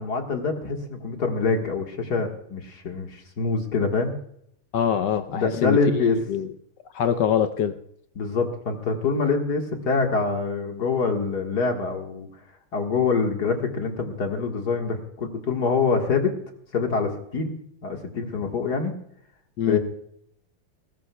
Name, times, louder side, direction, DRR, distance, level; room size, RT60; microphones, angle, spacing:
voice 1, 0.0-4.1 5.3-6.2 8.2-12.3 12.7-16.3 16.7-18.9 19.7-19.8, left 4 dB, 50° left, 3 dB, 2.0 m, -25 dB
voice 2, 4.7-6.5 6.9-7.8 19.6-19.8, left 8 dB, 70° left, 10 dB, 1.1 m, -24 dB
20.5 x 17.0 x 2.3 m, 0.70 s
omnidirectional pair, 2.4 m